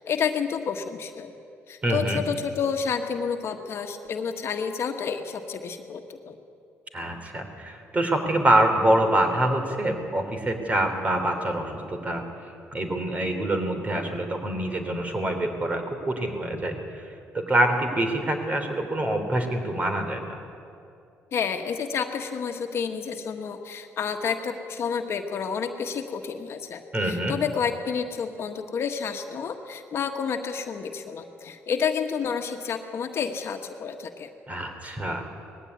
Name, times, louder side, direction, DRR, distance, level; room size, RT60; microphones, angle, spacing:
voice 1, 0.0-1.3 1.7-6.4 21.3-34.3, left 6 dB, 60° left, 5 dB, 1.5 m, -30 dB
voice 2, 1.8-2.2 6.9-12.2 12.7-16.7 17.3-20.4 26.9-27.3 34.5-35.2, right 1 dB, 30° right, 5 dB, 3.4 m, -25 dB
19.5 x 15.5 x 9.8 m, 2.6 s
cardioid pair, 90°, 5 cm